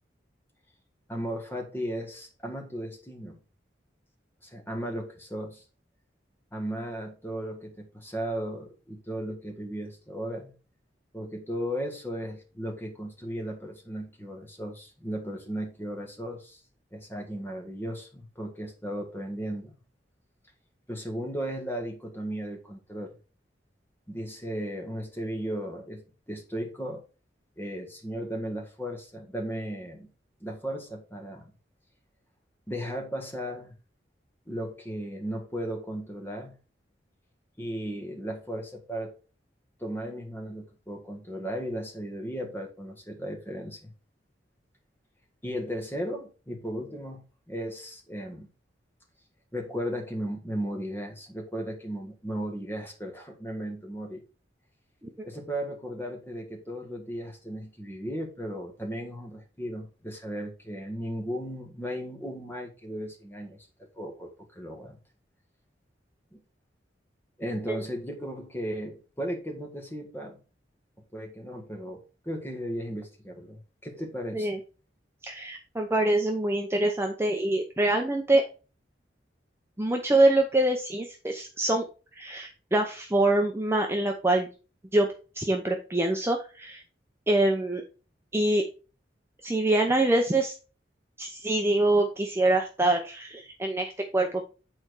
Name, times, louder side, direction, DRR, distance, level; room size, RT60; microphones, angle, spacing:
voice 1, 1.1-3.4 4.4-5.6 6.5-10.5 11.1-16.6 16.9-19.7 20.9-23.2 24.1-27.0 27.6-30.1 30.4-31.5 32.7-33.7 34.5-36.5 37.6-39.1 39.8-43.9 45.4-48.5 49.5-54.2 55.3-63.7 63.9-65.0 66.3-66.4 67.4-70.4 71.1-74.5, equal, 10° left, 1.7 m, -36 dB
voice 2, 75.2-78.4 79.8-81.8 82.2-84.5 84.9-85.1 85.4-86.8 87.3-87.8 88.3-88.6 89.4-90.5 91.2-94.5, right 2 dB, 15° right, 0.7 m, -25 dB
8.8 x 4.4 x 4.7 m
head